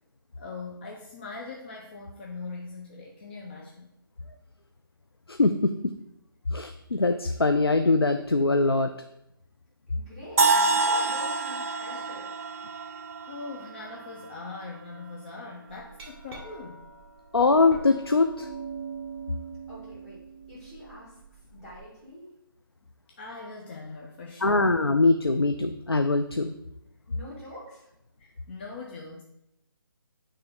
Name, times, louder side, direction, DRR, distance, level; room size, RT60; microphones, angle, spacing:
voice 1, 0.4-3.9 12.7-16.9 23.2-24.8 28.2-29.2, left 3 dB, 30° left, -1 dB, 0.6 m, -41 dB
voice 2, 5.3-5.9 6.5-8.9 17.3-18.5 24.4-26.5, left 3 dB, 90° left, 6 dB, 0.4 m, -22 dB
voice 3, 9.9-12.3 19.7-20.2 20.5-21.2 21.5-22.3 27.1-27.9, left 1 dB, 5° left, -13 dB, 2.4 m, -44 dB
sound 1, 10.4-14.3, right 3 dB, 35° right, 0.4 m, -26 dB
Glass, 15.7-21.8, right 6 dB, 15° right, 1.0 m, -42 dB
8.6 x 3.3 x 3.7 m, 0.81 s
figure-of-eight pair, 145°, 12 cm